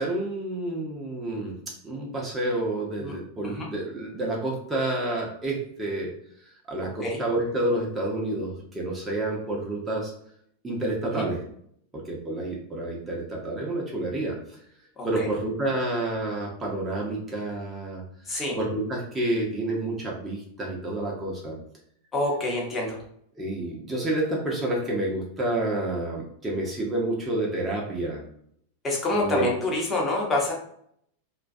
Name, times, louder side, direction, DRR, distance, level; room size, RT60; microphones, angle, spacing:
voice 1, 0.0-6.1 6.4-10.1 10.6-11.4 11.9-14.6 15.0-18.0 18.3-21.6 23.4-28.2 29.2-29.5, right 1 dB, 15° right, -3 dB, 0.6 m, -29 dB
voice 2, 15.0-15.3 18.3-18.6 22.1-23.0 28.8-30.5, left 2 dB, 15° left, -2 dB, 0.8 m, -27 dB
2.3 x 2.2 x 2.5 m, 0.66 s
figure-of-eight pair, 90°, 0 cm